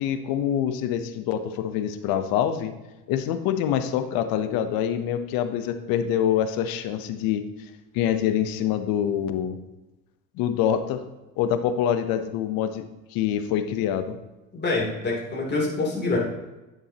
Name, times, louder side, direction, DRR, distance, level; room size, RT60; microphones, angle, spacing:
voice 1, 0.0-2.7 3.1-7.4 7.9-9.6 10.4-11.0 11.4-12.8 13.1-14.2, left 9 dB, 70° left, 9 dB, 0.9 m, -25 dB
voice 2, 14.5-16.2, left 3 dB, 30° left, -4 dB, 3.1 m, -26 dB
10.5 x 7.2 x 2.9 m, 1.0 s
supercardioid pair, 85°, 37 cm